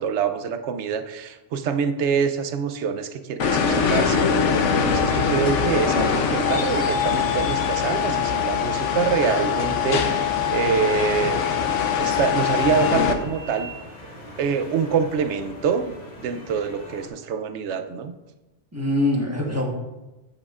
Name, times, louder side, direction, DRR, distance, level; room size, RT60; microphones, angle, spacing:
voice 1, 0.0-11.4 12.0-13.7 14.4-18.1, right 6 dB, 75° right, 8 dB, 0.9 m, -25 dB
sound 1, 3.4-13.1, left 6 dB, 85° left, 1.1 m, -22 dB
sound 2, 5.6-17.1, equal, 35° left, 1.3 m, -42 dB
voice 2, 18.7-19.6, left 1 dB, 15° right, -1 dB, 1.3 m, -25 dB
8.7 x 8.6 x 2.4 m, 1.1 s
omnidirectional pair, 1.2 m